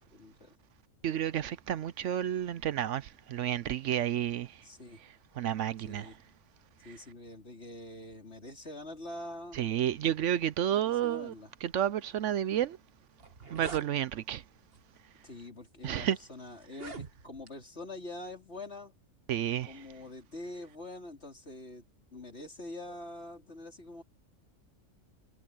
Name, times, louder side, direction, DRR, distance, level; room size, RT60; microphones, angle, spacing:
voice 1, 0.1-0.5 4.6-5.0 5.8-6.2 6.8-9.7 10.7-11.5 15.2-18.9 19.6-21.9 22.1-24.0, left 2 dB, 55° left, 4.4 m, -45 dB
voice 2, 1.0-4.5 5.4-6.1 9.5-11.3 11.6-12.8 13.5-14.4 15.8-16.2 19.3-19.8, right 10 dB, 70° right, 0.9 m, -31 dB
sound 1, 13.1-13.9 14.7-15.0 15.7-15.8 16.6-17.5, right 4 dB, 45° right, 2.1 m, -44 dB
omnidirectional pair, 1.4 m